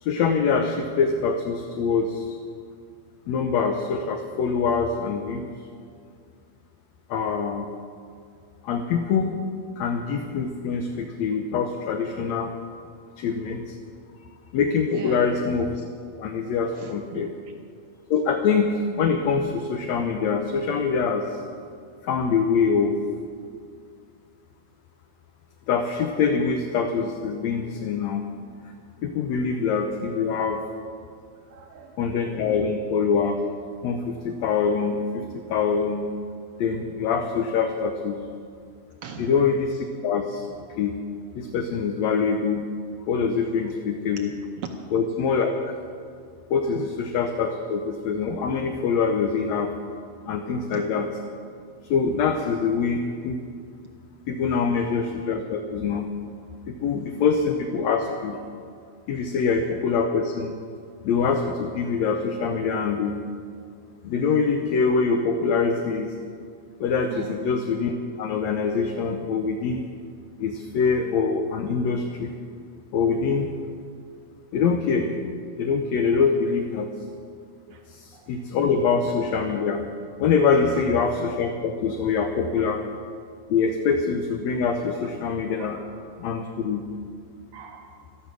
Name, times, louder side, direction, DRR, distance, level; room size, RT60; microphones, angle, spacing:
voice 1, 0.0-2.4 3.3-5.5 7.1-7.7 8.6-9.4 9.8-12.5 13.2-13.8 14.5-15.8 16.2-17.3 18.1-21.4 22.0-23.0 25.7-28.2 29.0-30.6 32.0-33.4 33.8-36.1 36.6-38.2 39.2-40.5 40.8-41.0 41.4-42.7 43.1-44.3 44.9-45.8 46.5-49.7 50.3-51.1 51.9-53.4 54.3-56.1 56.7-58.4 59.1-60.5 61.0-63.2 64.0-66.1 66.8-67.9 68.2-69.8 70.4-72.3 72.9-73.5 74.5-75.1 75.6-76.9 77.9-79.8 80.2-82.8 83.5-85.8 86.2-86.9, left 5 dB, 70° left, 5 dB, 1.9 m, -24 dB
voice 2, 14.9-15.2 16.7-17.3 31.5-32.0 32.3-32.7 39.0-39.3 44.6-44.7 50.7-50.9 67.1-67.4 77.7-77.8 78.1-78.3 79.0-79.2 80.5-80.8 85.7-85.8 87.5-88.0, right 7 dB, 80° right, 4 dB, 1.2 m, -40 dB
13.5 x 13.0 x 6.2 m, 2.2 s
omnidirectional pair, 3.4 m